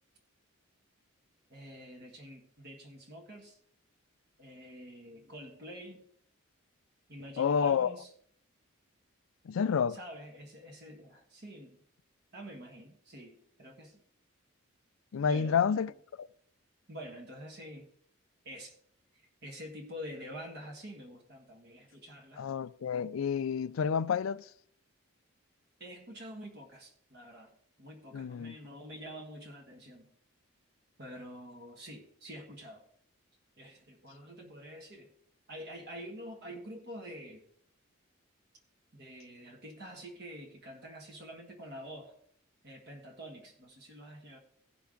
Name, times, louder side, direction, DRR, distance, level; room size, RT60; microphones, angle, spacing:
voice 1, 1.5-3.6 4.4-6.1 7.1-8.1 9.9-11.8 12.3-14.0 15.2-15.8 16.9-17.9 18.4-18.7 19.1-22.5 25.8-30.1 31.0-32.8 33.6-35.1 35.5-37.4 38.9-42.1 42.6-44.4, equal, 50° right, 1.5 m, -47 dB
voice 2, 7.4-7.9 9.5-10.0 15.1-15.9 16.2-16.3 22.4-24.4 28.1-28.5, left 7 dB, 70° left, 0.4 m, -29 dB
16.5 x 5.8 x 3.8 m
head